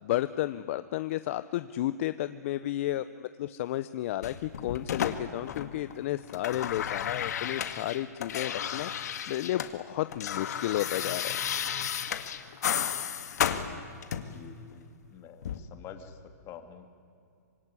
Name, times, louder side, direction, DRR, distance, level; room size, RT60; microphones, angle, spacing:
voice 1, 0.0-11.4, left 14 dB, 50° left, 13 dB, 0.8 m, -32 dB
sound 1, 4.2-5.9 6.2-9.7 10.0-14.4 15.4-15.6, left 9 dB, 70° left, 2.0 m, -33 dB
voice 2, 14.2-16.9, left 8 dB, 30° left, 7 dB, 2.5 m, -48 dB
25.5 x 22.0 x 9.9 m, 2.5 s
hypercardioid pair, 140°, 9 cm